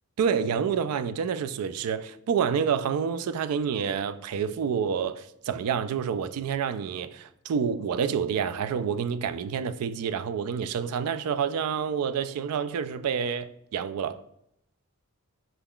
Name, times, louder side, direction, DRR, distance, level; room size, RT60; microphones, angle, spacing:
voice 1, 0.2-14.2, right 7 dB, 85° right, 0.3 m, -28 dB
5.7 x 3.6 x 2.3 m
head